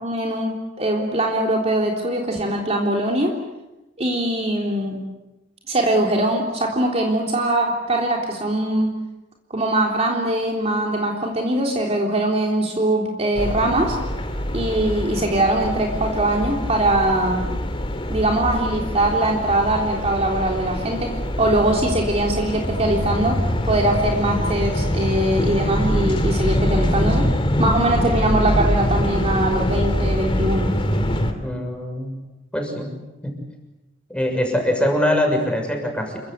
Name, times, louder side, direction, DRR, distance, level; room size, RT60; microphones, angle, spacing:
voice 1, 0.0-3.3 4.0-5.0 5.7-8.9 9.5-14.0 14.5-17.5 18.1-23.4 23.6-27.3 27.6-30.7, right 1 dB, 35° right, 0 dB, 3.5 m, -22 dB
sound 1, 13.4-31.3, equal, 30° left, 3.0 m, -24 dB
voice 2, 31.4-32.1 32.5-33.4 34.1-36.2, left 1 dB, 5° left, 3 dB, 6.6 m, -23 dB
29.0 x 24.0 x 8.1 m, 1.0 s
head